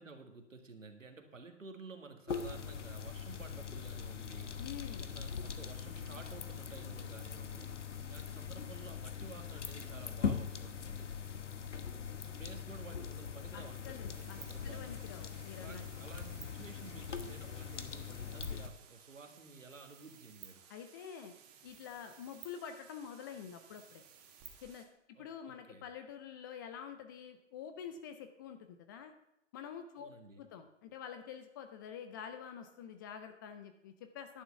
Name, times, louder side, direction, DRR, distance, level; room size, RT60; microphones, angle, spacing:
voice 1, 0.0-4.6 4.9-11.3 11.7-15.0 15.6-20.6 25.2-25.8 30.0-30.4, right 3 dB, 80° right, 5 dB, 1.9 m, -53 dB
sound 1, 2.3-18.7, left 6 dB, 70° left, 1.2 m, -42 dB
voice 2, 4.6-5.1 13.5-15.8 20.7-21.3 21.6-24.0 24.6-24.8 25.2-29.1 29.5-30.1 30.4-34.4, left 8 dB, 15° left, 7 dB, 0.4 m, -47 dB
sound 2, 14.1-24.9, right 9 dB, 30° right, 1.7 m, -57 dB
11.0 x 6.0 x 6.9 m, 0.82 s
figure-of-eight pair, 120°, 38 cm